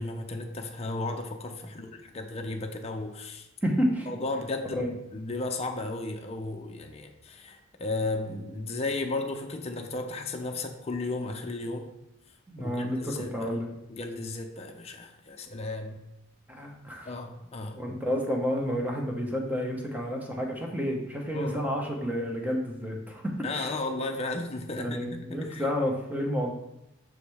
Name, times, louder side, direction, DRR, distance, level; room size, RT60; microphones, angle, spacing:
voice 1, 0.0-3.5 4.1-11.9 12.6-13.5 13.9-16.0 17.1-17.8 21.3-21.6 23.4-25.7, left 2 dB, 30° left, 3 dB, 0.6 m, -34 dB
voice 2, 3.6-4.1 4.8-4.9 12.5-13.7 16.5-17.1 17.8-23.7 24.7-26.5, equal, 10° right, 0 dB, 0.9 m, -30 dB
6.2 x 5.0 x 3.4 m, 0.88 s
head